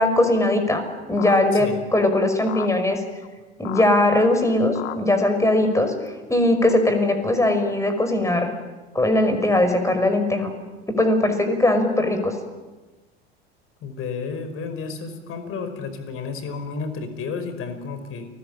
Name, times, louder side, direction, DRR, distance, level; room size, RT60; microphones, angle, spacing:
voice 1, 0.0-3.0 3.6-8.5 8.9-10.5 10.9-12.4, left 1 dB, 10° left, 7 dB, 5.6 m, -20 dB
sound 1, 1.2-1.4 2.5-2.7 3.2-3.3 3.7-3.9 4.2-4.3 4.8-5.0 6.1-6.2 6.7-6.8, left 17 dB, 65° left, 1.8 m, -34 dB
voice 2, 13.8-18.3, left 5 dB, 45° left, 9 dB, 5.3 m, -32 dB
29.5 x 20.5 x 8.9 m, 1.2 s
figure-of-eight pair, 80°, 32 cm